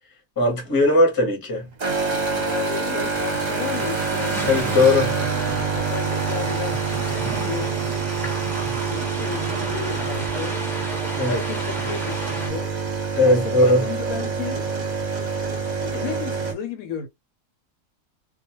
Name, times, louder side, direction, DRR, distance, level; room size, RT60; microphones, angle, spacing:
voice 1, 0.4-1.6 4.5-5.1 11.1-11.4 13.1-13.8, left 2 dB, 20° left, 0.7 m, -18 dB
sound 1, 1.8-16.5, right 5 dB, 40° right, 0.7 m, -26 dB
voice 2, 2.4-4.4 5.5-6.8 7.4-8.5 8.8-10.6 11.2-12.8 13.3-14.7 15.8-17.1, left 8 dB, 75° left, 1.0 m, -33 dB
sound 2, 3.1-12.5, equal, 5° left, 0.4 m, -33 dB
2.2 x 2.2 x 2.9 m
omnidirectional pair, 1.5 m